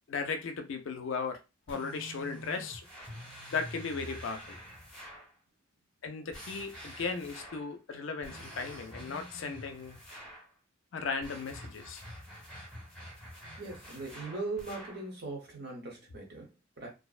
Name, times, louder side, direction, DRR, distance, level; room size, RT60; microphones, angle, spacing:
voice 1, 0.1-1.4 1.7-2.8 3.5-4.6 6.0-10.0 10.9-12.0, left 5 dB, 65° left, 0.4 m, -36 dB
sound 1, 1.7-5.3 6.3-7.7 8.2-10.5 11.2-15.1, equal, ahead, 1.0 m, -47 dB
voice 2, 13.6-16.9, right 3 dB, 55° right, 0.9 m, -40 dB
2.5 x 2.1 x 2.3 m
head